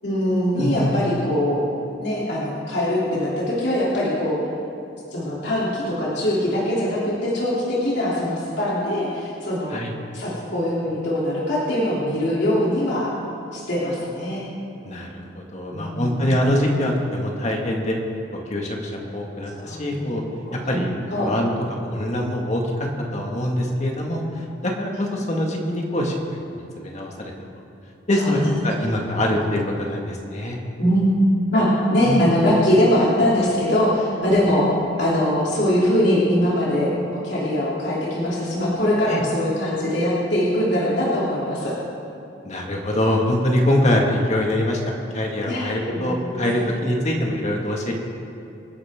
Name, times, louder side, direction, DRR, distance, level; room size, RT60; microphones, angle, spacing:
voice 1, 0.0-1.6 2.0-4.4 5.1-9.8 10.1-13.1 13.5-14.4 15.7-16.4 19.5-21.3 28.1-28.5 30.8-31.2 31.5-34.7 35.0-41.7 45.5-45.7 45.9-46.6, left 1 dB, 60° left, -7 dB, 3.3 m, -22 dB
voice 2, 0.6-0.9 9.7-9.9 14.8-18.0 18.5-20.2 20.5-21.5 21.9-26.1 26.5-27.3 28.1-30.6 32.0-32.2 39.1-39.2 42.4-47.9, left 1 dB, 40° left, 0 dB, 2.0 m, -24 dB
27.0 x 10.0 x 3.8 m, 2.6 s
head